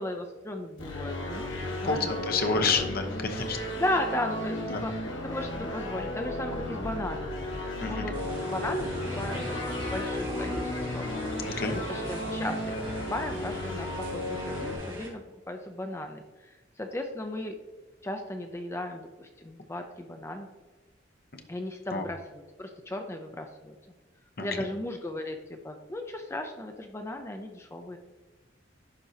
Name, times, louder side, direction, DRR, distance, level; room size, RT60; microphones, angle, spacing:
voice 1, 0.0-1.5 1.8-2.9 3.5-7.4 7.8-8.2 8.5-8.9 9.2-9.5 9.9-11.0 11.7-12.8 13.1-16.2 16.8-17.5 18.0-20.5 21.5-23.7 24.4-28.0, left 1 dB, 15° left, 4 dB, 0.4 m, -36 dB
sound 1, 0.8-14.8, left 1 dB, 80° left, 1.6 m, -34 dB
voice 2, 1.8-3.6 4.6-4.8 7.8-8.1 11.4-11.8 21.9-22.0 24.4-24.5, left 4 dB, 50° left, 5 dB, 0.9 m, -29 dB
sound 2, 8.1-15.1, equal, 25° right, 2.3 m, -39 dB
11.5 x 4.4 x 2.8 m, 1.3 s
head